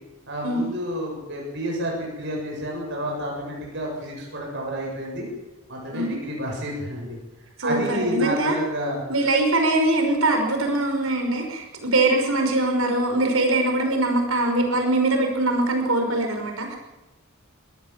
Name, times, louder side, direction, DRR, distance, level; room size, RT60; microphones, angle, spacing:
voice 1, 0.3-5.3 5.7-7.2 7.6-9.0, equal, 60° right, -2 dB, 7.4 m, -29 dB
voice 2, 7.6-8.6 9.1-16.8, right 2 dB, 85° right, 4 dB, 5.5 m, -22 dB
23.0 x 17.5 x 7.6 m, 1.0 s
head